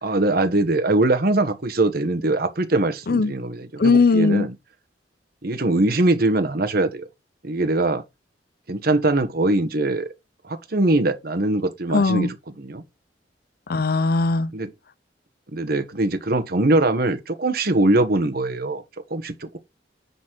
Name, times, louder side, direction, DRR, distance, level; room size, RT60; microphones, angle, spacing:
voice 1, 0.0-4.5 5.4-7.1 7.4-8.0 8.7-10.1 10.4-12.8 14.5-14.7 15.5-18.8 19.1-19.6, right 2 dB, 55° right, 1.3 m, -22 dB
voice 2, 3.8-4.5 11.9-12.3 13.7-14.5, left 3 dB, 55° left, 0.6 m, -19 dB
10.0 x 4.2 x 4.6 m
head